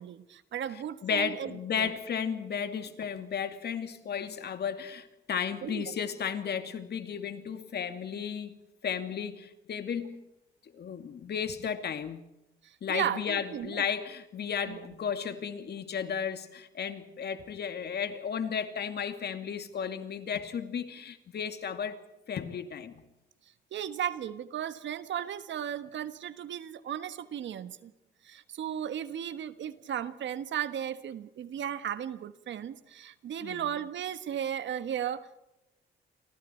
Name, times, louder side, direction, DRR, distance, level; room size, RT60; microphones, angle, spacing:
voice 1, 0.0-1.9 5.6-5.9 12.6-13.8 14.6-14.8 23.7-27.9 28.2-35.4, right 9 dB, 65° right, 1.5 m, -35 dB
voice 2, 1.0-8.6 8.8-10.2 10.6-12.2 12.8-22.0 22.3-23.1 33.4-33.6, left 7 dB, 55° left, 2.5 m, -34 dB
29.0 x 24.0 x 4.6 m
cardioid pair, 90°, 20 cm